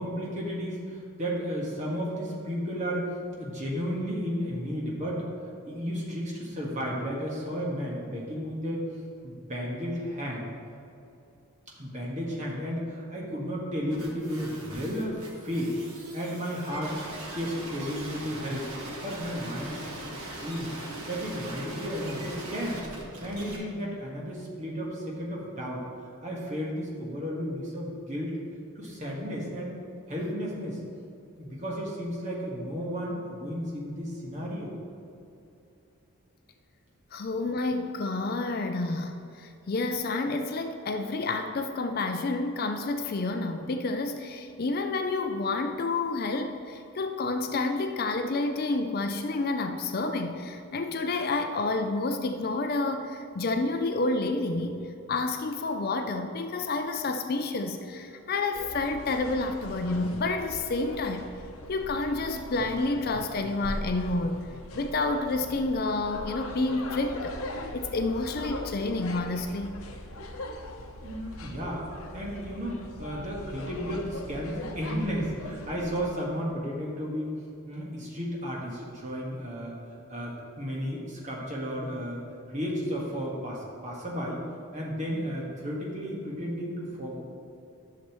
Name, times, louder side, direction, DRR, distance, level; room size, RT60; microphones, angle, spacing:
voice 1, 0.0-3.1 3.4-5.3 5.6-8.8 9.2-10.5 11.8-15.7 16.1-17.0 17.3-18.7 19.0-19.9 20.2-20.7 21.1-22.8 23.2-25.8 26.2-28.4 28.7-29.8 30.1-30.8 31.4-34.7 71.0-71.8 72.1-77.3 77.7-79.7 80.1-82.2 82.5-84.4 84.7-87.2, equal, 35° right, -3 dB, 1.6 m, -33 dB
sound 1, 13.9-23.6, right 1 dB, 85° right, 1.5 m, -40 dB
voice 2, 37.1-54.8 55.1-61.3 61.7-64.5 64.7-67.4 67.7-69.8, left 3 dB, 45° left, 6 dB, 0.4 m, -29 dB
sound 2, 58.5-76.1, left 1 dB, 75° left, 0.7 m, -40 dB
11.0 x 6.7 x 3.1 m, 2.7 s
head